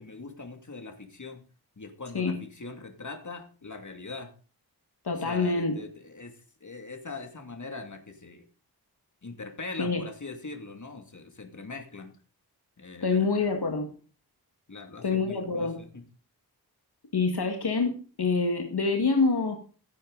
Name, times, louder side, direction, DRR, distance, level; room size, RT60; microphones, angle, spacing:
voice 1, 0.0-1.4 1.8-4.3 5.1-6.3 6.6-8.4 9.2-12.1 12.8-13.5 14.7-16.0, left 3 dB, 45° left, 5 dB, 2.5 m, -41 dB
voice 2, 5.0-5.8 9.8-10.0 13.0-13.9 15.0-15.8 17.1-19.6, left 4 dB, 75° left, 4 dB, 2.0 m, -26 dB
15.5 x 8.7 x 4.0 m, 0.38 s
wide cardioid pair, 65°, 39 cm